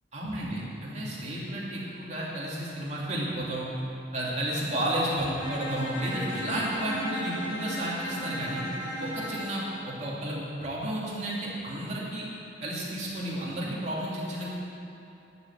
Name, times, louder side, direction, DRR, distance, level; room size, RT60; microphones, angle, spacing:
voice 1, 0.1-3.7 4.1-8.6 9.0-12.3 12.6-14.5, right 1 dB, 40° right, -5 dB, 2.6 m, -32 dB
Bowed string instrument, 5.4-9.6, equal, 85° left, 2.6 m, -35 dB
11.0 x 7.0 x 9.1 m, 2.9 s
head